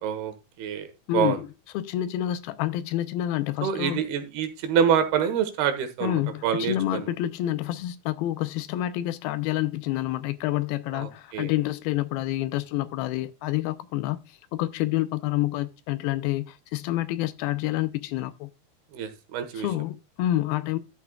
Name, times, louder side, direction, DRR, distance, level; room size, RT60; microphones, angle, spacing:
voice 1, 0.0-0.9 1.1-1.4 3.6-7.1 10.9-11.5 18.9-19.7, right 8 dB, 85° right, 3.2 m, -26 dB
voice 2, 1.1-1.5 1.7-4.0 6.0-14.2 14.5-18.5 19.6-20.8, left 14 dB, 80° left, 2.5 m, -28 dB
12.5 x 8.4 x 2.3 m
omnidirectional pair, 4.4 m